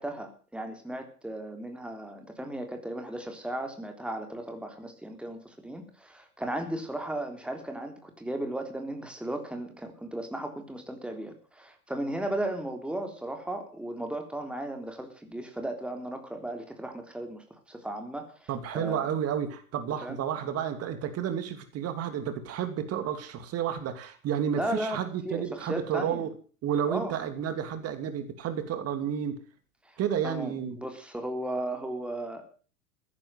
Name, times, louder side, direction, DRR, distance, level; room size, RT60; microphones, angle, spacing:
voice 1, 0.0-19.1 20.0-20.2 24.5-25.0 25.3-26.3 26.9-27.2 30.2-32.5, right 1 dB, ahead, 5 dB, 3.7 m, -35 dB
voice 2, 18.5-26.3 26.6-29.4 30.0-30.8, right 9 dB, 35° right, 9 dB, 2.6 m, -31 dB
15.0 x 10.5 x 7.8 m, 0.40 s
figure-of-eight pair, 85°, 44 cm